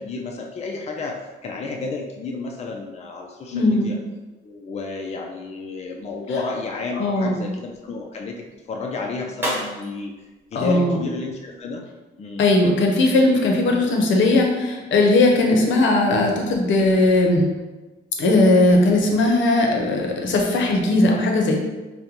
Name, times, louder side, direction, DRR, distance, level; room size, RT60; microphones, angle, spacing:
voice 1, 0.0-4.0 4.4-10.1 10.5-11.8 12.2-12.4, left 3 dB, 35° left, 1 dB, 0.4 m, -31 dB
voice 2, 3.5-3.9 7.0-7.3 10.5-11.0 12.4-17.5 18.2-21.6, left 2 dB, 70° left, 1 dB, 0.7 m, -18 dB
sound 1, 5.9-11.7, right 1 dB, 10° right, 1.3 m, -37 dB
5.1 x 2.2 x 2.9 m, 1.2 s
cardioid pair, 90°, 20 cm